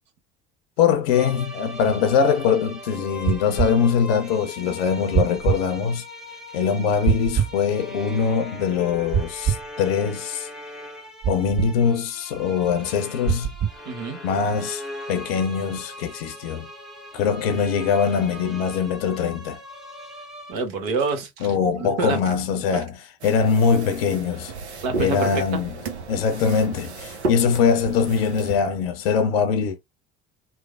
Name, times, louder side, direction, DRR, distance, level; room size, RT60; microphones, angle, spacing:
voice 1, 0.8-6.0 6.5-10.5 11.3-13.5 14.2-14.8 15.1-16.7 17.1-19.6 21.4-24.5 25.0-25.8 26.1-29.8, left 6 dB, 65° left, 0.6 m, -22 dB
sound 1, 1.1-20.5, left 1 dB, ahead, 0.8 m, -40 dB
sound 2, 3.2-3.7 5.1-5.6 7.0-7.5 9.1-9.7 11.2-11.7 13.2-13.8, right 9 dB, 30° right, 0.5 m, -23 dB
voice 2, 13.8-14.2 20.5-21.5 21.8-22.2 24.8-25.6, right 4 dB, 60° right, 1.0 m, -27 dB
sound 3, 23.2-28.6, right 3 dB, 80° right, 0.6 m, -34 dB
3.1 x 2.0 x 2.3 m
figure-of-eight pair, 60°, 33 cm